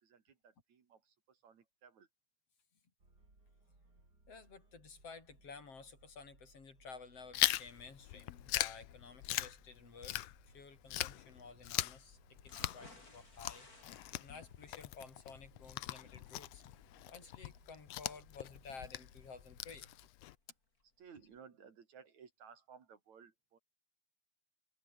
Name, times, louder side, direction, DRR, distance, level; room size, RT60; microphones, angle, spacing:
voice 1, 0.0-2.1 21.0-23.6, right 6 dB, 65° right, 3.9 m, -59 dB
sound 1, 3.0-20.1, right 2 dB, 30° right, 6.6 m, -67 dB
voice 2, 4.3-10.3 10.5-13.7 14.2-16.6 17.1-19.9, left 4 dB, 50° left, 4.6 m, -53 dB
Chewing mastication, 7.3-10.6 10.9-20.3, left 15 dB, 70° left, 1.7 m, -40 dB
sound 2, 12.4-20.4 20.8-20.9 21.3-21.4, left 2 dB, 30° left, 5.3 m, -62 dB
omnidirectional pair, 3.5 m